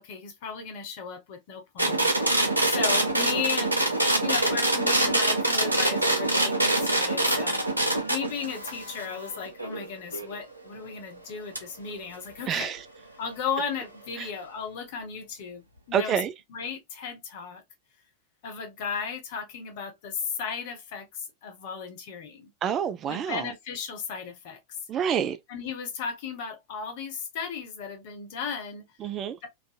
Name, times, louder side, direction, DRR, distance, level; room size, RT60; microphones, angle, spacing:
voice 1, 0.0-3.8 4.2-7.6 8.1-12.7 13.2-16.2 16.5-17.6 18.4-22.5 23.1-24.6 25.5-28.9 29.4-29.5, left 6 dB, 50° left, 0.9 m, -35 dB
sound 1, 1.8-10.4 11.6-11.7, right 1 dB, 85° right, 0.6 m, -25 dB
voice 2, 12.5-12.8 14.2-14.3 15.9-16.3 22.6-23.5 24.9-25.4 29.0-29.4, right 8 dB, 30° right, 0.3 m, -27 dB
2.5 x 2.5 x 2.3 m
figure-of-eight pair, 90°, 0 cm